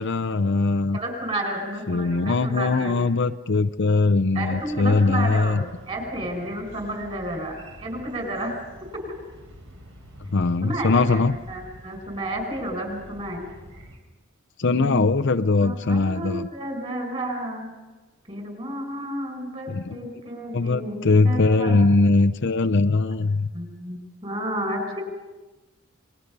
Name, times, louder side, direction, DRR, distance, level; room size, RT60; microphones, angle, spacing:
voice 1, 0.0-1.0 1.9-5.6 10.3-11.4 14.6-16.5 19.7-20.0 20.5-23.5, left 3 dB, 55° left, 8 dB, 0.6 m, -21 dB
voice 2, 0.9-3.0 4.3-8.5 8.9-9.0 10.6-13.5 14.6-15.0 15.6-17.7 18.3-21.0 21.2-21.8 23.5-25.0, right 1 dB, 25° right, 3 dB, 5.5 m, -31 dB
sound 1, 4.5-14.0, equal, 65° right, 4.4 m, -46 dB
28.0 x 21.0 x 5.4 m, 1.2 s
head